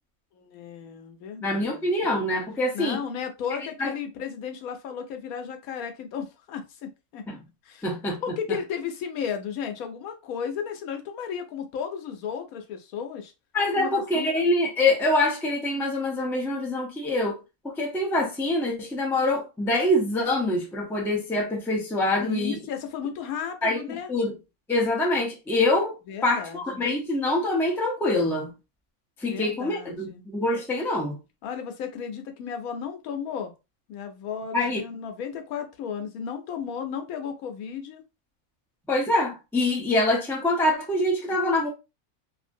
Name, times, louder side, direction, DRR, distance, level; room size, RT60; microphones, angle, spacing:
voice 1, 0.3-2.1 2.7-7.2 7.6-7.9 8.2-13.3 13.7-14.4 22.2-24.1 26.1-26.8 29.3-30.2 31.4-33.5 33.9-38.0, left 7 dB, 85° left, 1.1 m, -34 dB
voice 2, 1.4-3.0 3.8-3.9 7.3-7.4 7.8-8.2 13.5-17.4 17.6-22.6 23.6-23.8 24.1-24.4 24.7-25.9 26.2-28.5 29.2-31.2 34.5-34.8 38.9-41.7, left 2 dB, 5° left, 0.4 m, -25 dB
2.7 x 2.6 x 2.5 m
omnidirectional pair, 1.5 m